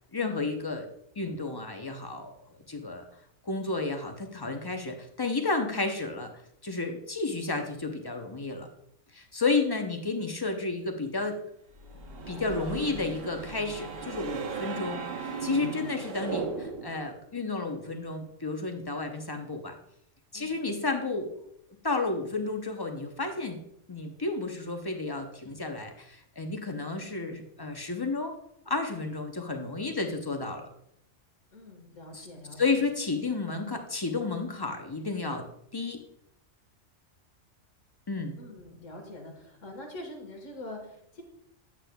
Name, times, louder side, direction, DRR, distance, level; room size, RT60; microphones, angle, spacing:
voice 1, 0.1-0.9 1.2-2.3 2.7-3.0 3.4-6.3 6.6-8.7 9.1-11.4 12.3-19.8 20.3-21.5 21.8-23.6 23.9-28.3 28.7-30.7 32.1-32.3 32.6-36.0 38.1-38.4, left 3 dB, 25° left, 5 dB, 0.5 m, -32 dB
sound 1, 11.8-17.0, right 5 dB, 55° right, 1.0 m, -36 dB
voice 2, 20.3-20.7 31.5-32.9 38.4-41.2, left 1 dB, 90° left, 3 dB, 1.7 m, -44 dB
8.3 x 8.0 x 2.3 m, 0.74 s
omnidirectional pair, 1.3 m